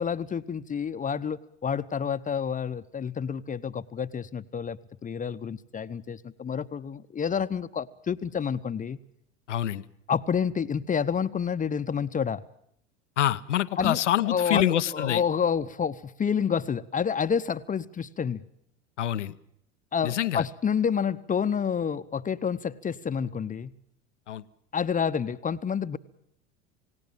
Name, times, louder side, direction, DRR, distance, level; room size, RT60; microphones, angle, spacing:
voice 1, 0.0-9.0 10.1-12.4 13.8-18.4 19.9-23.7 24.7-26.0, left 7 dB, 20° left, 12 dB, 0.9 m, -29 dB
voice 2, 9.5-9.8 13.2-15.2 19.0-19.3 20.0-20.4 24.3-24.4, left 12 dB, 85° left, 14 dB, 0.8 m, -26 dB
28.5 x 17.5 x 7.1 m, 0.70 s
hypercardioid pair, 80°, 35 cm